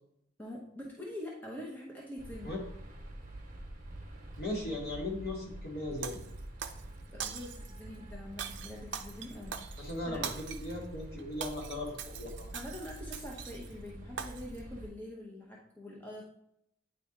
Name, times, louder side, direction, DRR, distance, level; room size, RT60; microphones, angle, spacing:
voice 1, 0.4-2.5 7.1-10.3 12.5-16.2, left 1 dB, 10° left, -4 dB, 0.8 m, -45 dB
sound 1, 2.2-14.9, right 1 dB, 45° right, 1.1 m, -47 dB
voice 2, 4.4-6.1 9.8-12.5, left 1 dB, 50° left, -3 dB, 2.0 m, -38 dB
Shatter, 6.0-6.8 7.2-7.8 8.4-10.8 11.2-13.7 14.2-14.6, right 8 dB, 65° right, 0.5 m, -42 dB
9.1 x 3.3 x 3.8 m, 0.75 s
head